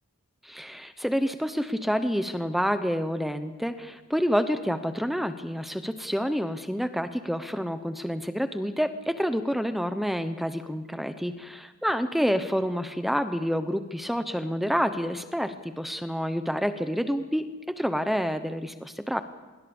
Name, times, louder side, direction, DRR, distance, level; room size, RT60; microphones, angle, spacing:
voice 1, 0.4-11.5 11.8-19.2, equal, ahead, 10 dB, 0.8 m, -28 dB
25.5 x 22.0 x 7.1 m, 1.3 s
head